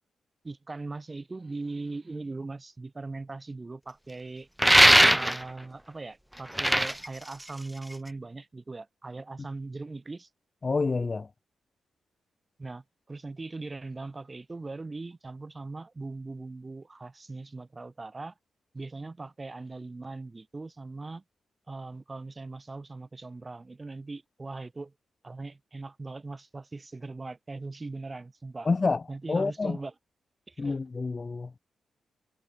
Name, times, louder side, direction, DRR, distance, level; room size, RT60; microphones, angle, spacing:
voice 1, 0.4-4.5 5.1-10.3 12.6-18.3 18.7-21.2 21.7-24.9 25.2-28.7 29.1-29.9 30.5-30.8, right 3 dB, 25° right, 3.1 m, -40 dB
sound 1, 4.6-5.6 6.4-8.1, equal, 5° right, 0.4 m, -20 dB
voice 2, 10.6-11.3 28.6-29.0 29.3-29.8 30.6-31.5, left 4 dB, 30° left, 1.8 m, -28 dB
cardioid pair, 115°, 0 cm